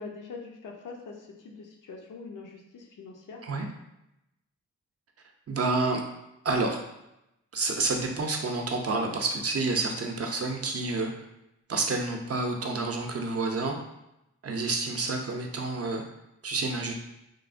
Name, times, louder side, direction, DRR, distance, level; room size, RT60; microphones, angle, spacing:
voice 1, 0.0-3.4, left 4 dB, 75° left, 1 dB, 0.6 m, -43 dB
voice 2, 5.5-6.0 6.4-6.8 7.5-11.1 11.7-13.8 14.4-16.0 16.4-16.9, right 3 dB, 50° right, 3 dB, 0.5 m, -29 dB
3.1 x 2.0 x 2.4 m, 0.86 s
cardioid pair, 50°, 31 cm